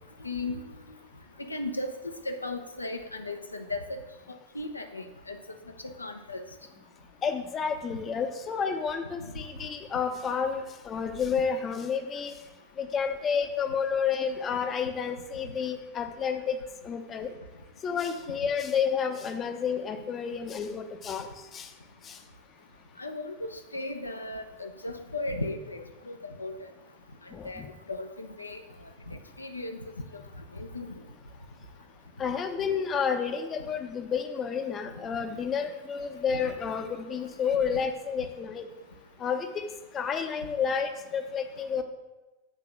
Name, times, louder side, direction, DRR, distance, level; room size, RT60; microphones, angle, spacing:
voice 1, 0.2-1.0 1.4-1.9 2.2-3.8 4.5-5.4 5.8-6.4 23.0-26.5 27.4-27.6 27.9-28.6 29.1-29.8 30.1-30.2 30.5-30.9, left 2 dB, 80° left, 6 dB, 0.6 m, -36 dB
voice 2, 7.2-12.3 12.8-16.6 16.8-17.3 17.8-21.3 21.5-21.7 22.0-22.2 27.3-27.7 32.2-38.7 39.2-39.6 39.9-41.8, left 6 dB, 25° left, 7 dB, 0.7 m, -30 dB
7.5 x 3.8 x 6.0 m, 1.1 s
figure-of-eight pair, 90°, 0 cm